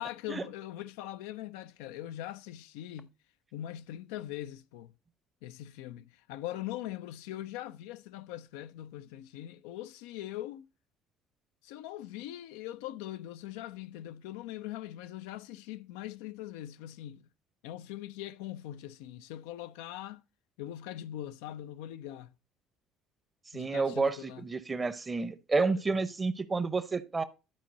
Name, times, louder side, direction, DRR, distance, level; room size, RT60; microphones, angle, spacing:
voice 1, 0.0-3.1 3.5-4.9 5.4-10.7 11.6-17.3 17.6-20.2 20.6-22.3 23.5-24.5 25.7-25.8, left 13 dB, 70° left, 0.4 m, -41 dB
voice 2, 23.5-27.2, right 4 dB, 25° right, 0.8 m, -30 dB
12.0 x 4.5 x 4.1 m
hypercardioid pair, 60°, 0 cm